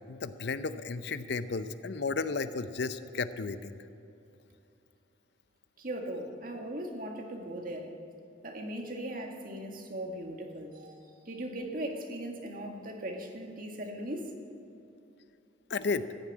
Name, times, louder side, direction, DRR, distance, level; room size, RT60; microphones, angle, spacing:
voice 1, 0.1-3.8 15.7-16.1, left 4 dB, 60° left, 12 dB, 0.6 m, -33 dB
voice 2, 5.8-7.9 8.4-14.3, right 1 dB, 50° right, 2 dB, 1.7 m, -39 dB
14.5 x 10.5 x 8.3 m, 2.7 s
head